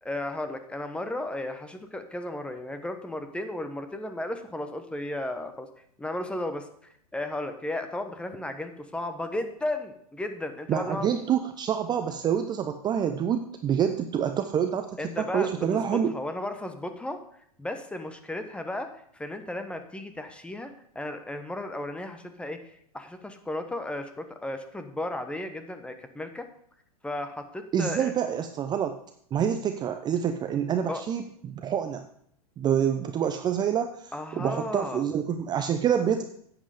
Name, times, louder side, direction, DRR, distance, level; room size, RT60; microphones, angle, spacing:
voice 1, 0.0-5.7 6.0-6.7 7.1-11.1 15.0-15.7 15.9-17.2 17.6-26.4 27.0-28.1 30.9-31.0 34.1-35.0, left 1 dB, 5° left, 8 dB, 1.1 m, -34 dB
voice 2, 10.7-16.1 27.7-29.0 29.3-32.1 32.6-36.2, right 8 dB, 20° right, 7 dB, 0.6 m, -27 dB
10.0 x 7.9 x 5.0 m, 0.67 s
hypercardioid pair, 105°, 20 cm